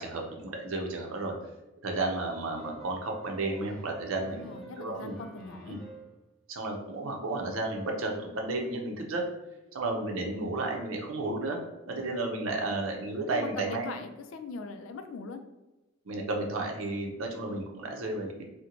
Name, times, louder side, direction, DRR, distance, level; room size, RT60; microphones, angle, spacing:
voice 1, 0.0-1.3 1.8-4.5 4.8-5.2 5.7-5.8 6.5-9.3 9.7-11.6 11.9-14.0 16.0-18.5, right 2 dB, 85° right, 1 dB, 0.6 m, -33 dB
sound 1, 2.6-6.2, right 1 dB, ahead, 0.9 m, -48 dB
voice 2, 4.3-5.8 11.9-12.1 13.3-15.4, left 4 dB, 75° left, 8 dB, 0.3 m, -41 dB
2.9 x 2.1 x 3.8 m, 1.0 s
head